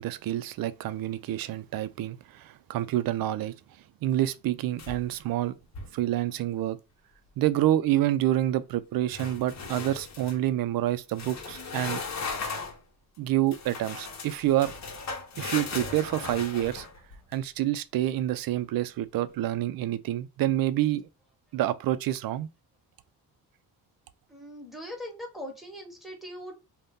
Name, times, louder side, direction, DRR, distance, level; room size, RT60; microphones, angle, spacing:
voice 1, 0.0-3.6 4.0-5.5 5.9-6.8 7.4-12.0 13.2-14.7 15.4-16.9 17.3-21.1 21.5-22.5, right 13 dB, 65° right, 0.5 m, -28 dB
sound 1, 4.8-5.3 5.6-6.0 9.1-10.4 11.1-12.8 13.5-17.3, left 4 dB, 45° left, 0.9 m, -37 dB
voice 2, 24.3-26.6, equal, ahead, 1.2 m, -40 dB
2.6 x 2.2 x 3.6 m
cardioid pair, 75°, 38 cm